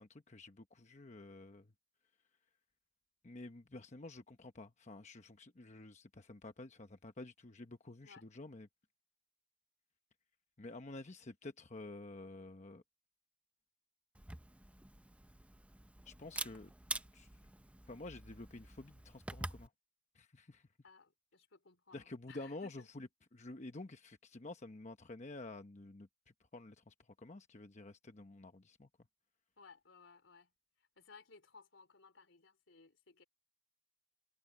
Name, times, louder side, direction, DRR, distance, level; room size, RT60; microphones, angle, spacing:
voice 1, 0.0-1.7 3.2-8.7 10.6-12.8 16.1-16.7 17.1-17.3 17.9-19.7 20.1-20.7 21.9-26.1 26.5-28.9, left 2 dB, 40° left, 0.9 m, -50 dB
Camera, 14.1-19.7, right 2 dB, 5° right, 0.6 m, -47 dB
voice 2, 20.8-22.9 29.6-30.5 31.0-33.2, left 5 dB, 80° left, 3.6 m, -60 dB
head